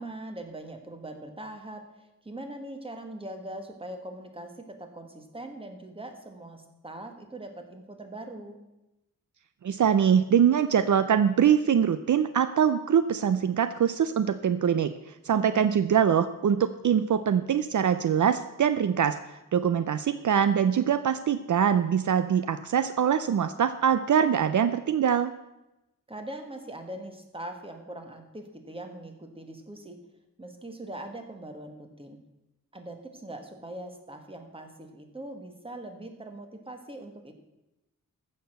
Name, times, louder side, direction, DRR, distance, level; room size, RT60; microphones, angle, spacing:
voice 1, 0.0-8.6 15.3-15.8 26.1-30.0 30.4-32.2 32.7-37.3, right 1 dB, 15° right, 5 dB, 1.6 m, -41 dB
voice 2, 9.6-14.9 15.2-19.2 19.5-25.3, right 8 dB, 65° right, 12 dB, 0.5 m, -23 dB
14.5 x 6.6 x 6.6 m, 0.95 s
wide cardioid pair, 140°, 33 cm